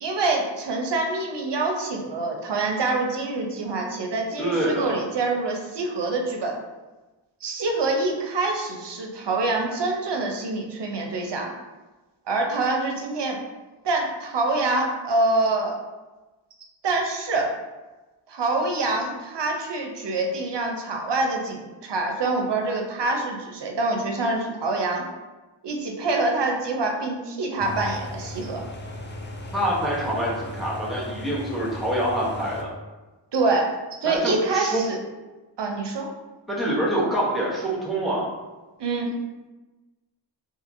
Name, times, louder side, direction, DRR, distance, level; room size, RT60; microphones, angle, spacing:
voice 1, 0.0-6.6 7.4-11.5 12.3-13.4 13.8-15.8 16.8-17.5 18.3-25.0 25.6-28.6 33.3-33.7 34.0-35.0 35.6-36.1 38.8-39.1, right 3 dB, 60° right, 2 dB, 0.6 m, -25 dB
voice 2, 4.4-5.0 29.5-32.7 34.0-34.9 36.5-38.3, right 1 dB, ahead, -6 dB, 0.9 m, -26 dB
sound 1, 27.6-32.6, left 1 dB, 25° left, 0.3 m, -36 dB
2.7 x 2.6 x 2.6 m, 1.2 s
wide cardioid pair, 65°, 47 cm